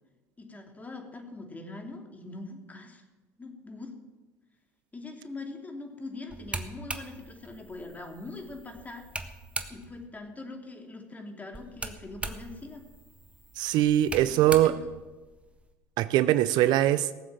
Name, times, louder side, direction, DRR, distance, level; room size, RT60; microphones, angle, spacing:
voice 1, 0.4-3.0 3.4-3.9 4.9-9.1 9.7-12.8 14.2-14.8, left 2 dB, 20° left, 2.9 m, -42 dB
sound 1, 6.3-10.1 11.5-15.7, right 2 dB, 15° right, 1.5 m, -41 dB
voice 2, 13.6-14.8 16.0-17.1, right 13 dB, 60° right, 0.5 m, -22 dB
18.0 x 7.5 x 7.5 m
hypercardioid pair, 75°, 9 cm